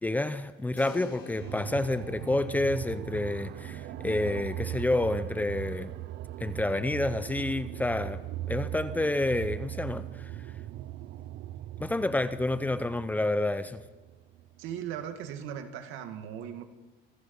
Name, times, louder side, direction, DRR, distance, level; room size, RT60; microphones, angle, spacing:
voice 1, 0.0-5.9 6.4-8.2 8.5-10.3 11.8-13.8, left 2 dB, 10° left, 0.6 m, -29 dB
Keyboard (musical), 0.8-9.1, left 8 dB, 75° left, 3.5 m, -52 dB
sound 1, 1.4-15.1, right 13 dB, 60° right, 0.6 m, -39 dB
voice 2, 14.6-16.6, right 9 dB, 90° right, 2.2 m, -38 dB
27.0 x 14.5 x 7.1 m
cardioid pair, 180°, 20 cm